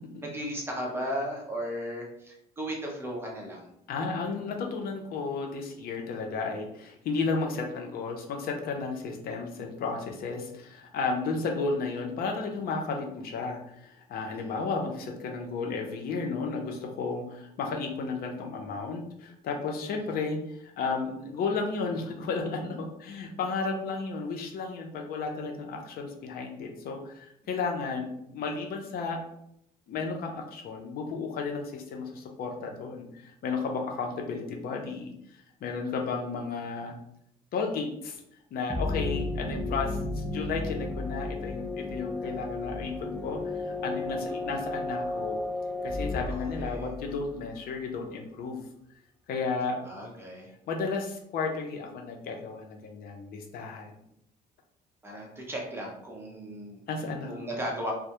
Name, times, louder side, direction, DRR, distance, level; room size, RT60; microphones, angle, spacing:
voice 1, 0.2-3.7 11.2-11.3 14.3-14.6 46.3-46.9 49.8-50.5 55.0-56.8 57.3-57.9, equal, 15° right, -1 dB, 0.7 m, -36 dB
voice 2, 3.9-29.2 29.9-35.1 35.6-36.9 37.5-38.2 38.5-45.4 45.8-48.6 49.3-49.8 50.7-54.0 56.9-57.3, left 4 dB, 65° left, 3 dB, 0.5 m, -33 dB
sound 1, 38.7-47.3, left 2 dB, 5° left, 0.3 m, -33 dB
2.2 x 2.0 x 2.8 m, 0.75 s
cardioid pair, 110°, 17 cm